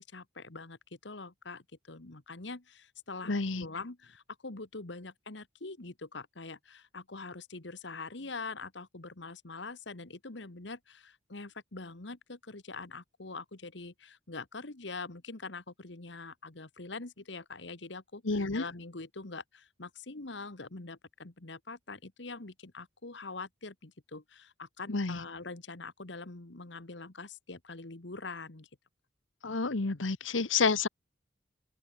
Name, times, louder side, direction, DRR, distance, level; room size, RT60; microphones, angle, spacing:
voice 1, 0.0-28.7, left 3 dB, 70° left, 1.6 m, -44 dB
voice 2, 3.3-3.6 18.3-18.6 24.9-25.2 29.4-30.9, left 4 dB, 90° left, 1.2 m, -29 dB
open air
head